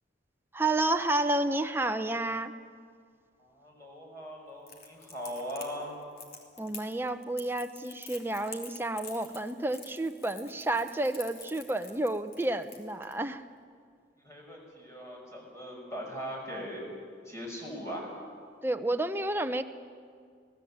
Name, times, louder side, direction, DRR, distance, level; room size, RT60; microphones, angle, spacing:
voice 1, 0.5-2.5 6.6-13.4 18.6-19.6, right 2 dB, 10° right, 7 dB, 0.8 m, -30 dB
voice 2, 3.4-6.1 14.2-16.8 17.2-18.1, equal, 15° left, -1 dB, 6.2 m, -40 dB
Crackle, 4.7-13.1, left 4 dB, 50° left, 3.3 m, -47 dB
26.0 x 18.5 x 8.8 m, 2.1 s
head